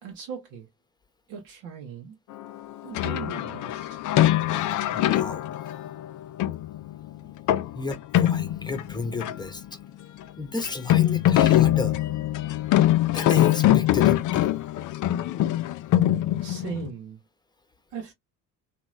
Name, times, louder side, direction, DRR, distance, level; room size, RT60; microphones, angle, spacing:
voice 1, 0.0-0.7 1.3-2.2 2.8-4.1 7.2-7.3 16.4-17.2 17.9-18.1, right 6 dB, 75° right, 1.2 m, -38 dB
sound 1, 2.9-9.6 9.9-10.0 10.2-10.3 10.6-16.9, left 13 dB, 40° left, 0.4 m, -23 dB
voice 2, 4.9-5.5 7.7-9.6 10.4-12.0 13.1-14.5, left 3 dB, 10° left, 0.8 m, -33 dB
2.9 x 2.7 x 2.4 m
hypercardioid pair, 70°, 50 cm